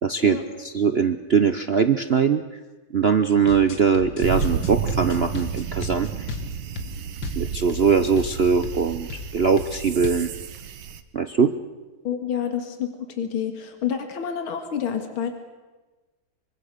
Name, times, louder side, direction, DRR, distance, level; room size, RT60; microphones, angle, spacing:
voice 1, 0.0-2.4 2.9-6.3 7.4-9.1 9.3-10.3 11.1-11.5, right 6 dB, 60° right, 9 dB, 0.6 m, -21 dB
sound 1, 3.3-7.9 8.2-8.3 8.6-8.8 9.1-9.3 9.6-10.3, left 4 dB, 65° left, 2.5 m, -35 dB
sound 2, 4.2-11.0, right 7 dB, 85° right, 2.1 m, -31 dB
voice 2, 12.0-15.3, left 8 dB, 80° left, 6 dB, 2.7 m, -28 dB
24.5 x 24.5 x 6.6 m, 1.2 s
omnidirectional pair, 2.3 m